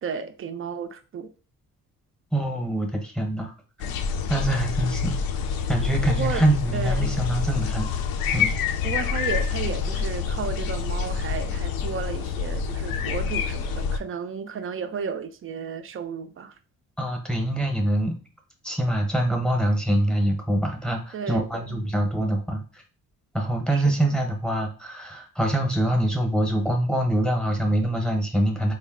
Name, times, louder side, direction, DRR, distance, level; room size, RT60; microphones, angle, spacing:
voice 1, 0.0-1.3 6.1-6.5 6.7-7.1 8.8-16.5 21.1-21.8 23.7-24.2, right 6 dB, 40° right, 0.4 m, -33 dB
voice 2, 2.3-3.5 4.3-5.2 5.7-7.9 8.3-8.5 17.0-18.2 18.6-22.6 23.3-28.7, right 1 dB, ahead, 0.8 m, -24 dB
sound 1, 3.8-14.0, left 6 dB, 80° left, 0.5 m, -27 dB
3.8 x 2.1 x 3.6 m
cardioid pair, 120°, 35 cm